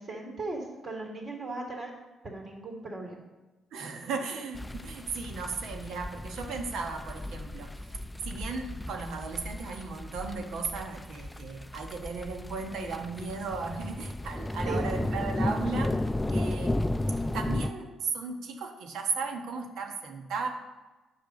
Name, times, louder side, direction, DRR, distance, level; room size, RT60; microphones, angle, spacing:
voice 1, 0.0-1.9 2.2-3.2 14.6-14.9, right 2 dB, 40° right, 0 dB, 3.0 m, -37 dB
voice 2, 3.7-7.7 8.2-16.0 16.3-16.8 17.3-20.5, right 4 dB, 80° right, 3 dB, 1.3 m, -36 dB
sound 1, 4.5-17.7, left 1 dB, 10° left, 0.4 m, -34 dB
10.5 x 4.9 x 6.7 m, 1.1 s
cardioid pair, 90°, 0 cm